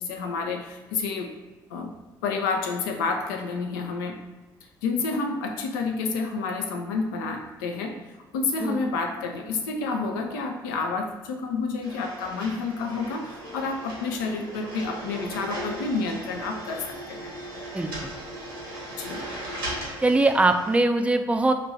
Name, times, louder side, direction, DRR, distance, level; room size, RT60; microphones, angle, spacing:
voice 1, 0.0-1.4 1.7-4.3 4.8-17.3 19.0-19.2, left 4 dB, 75° left, 3 dB, 0.5 m, -29 dB
sound 1, 11.8-20.8, right 1 dB, 85° right, 0.9 m, -37 dB
voice 2, 17.7-18.1 20.0-21.5, right 2 dB, 10° right, 7 dB, 0.4 m, -22 dB
2.9 x 2.6 x 4.2 m, 1.1 s
figure-of-eight pair, 50°, 11 cm